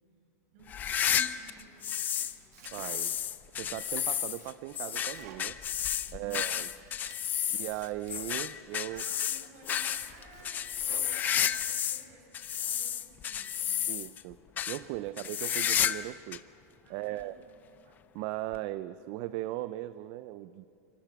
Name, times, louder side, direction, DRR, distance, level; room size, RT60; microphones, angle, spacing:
voice 1, 0.5-1.9 6.0-6.6 7.4-7.7 8.7-13.9 16.8-17.6, right 3 dB, 55° right, 2 dB, 6.8 m, -56 dB
sound 1, 0.7-2.4 2.7-12.0 12.3-14.2 14.6-14.8 15.2-16.1 16.3-16.4 17.2-17.3 18.5-18.6, left 9 dB, 20° left, 0.6 m, -31 dB
Domestic sounds home sounds, 1.9-3.4 3.8-6.3 6.7-8.7 9.2-9.3 9.7-11.6, right 8 dB, 85° right, 2.3 m, -54 dB
voice 2, 2.7-3.2 3.5-5.6 6.1-6.7 7.5-9.0 13.9-14.4 14.7-16.4 16.9-17.4 17.8-20.7, right 15 dB, 40° right, 14 dB, 0.5 m, -38 dB
27.0 x 26.5 x 6.0 m, 2.6 s
supercardioid pair, 160°, 9 cm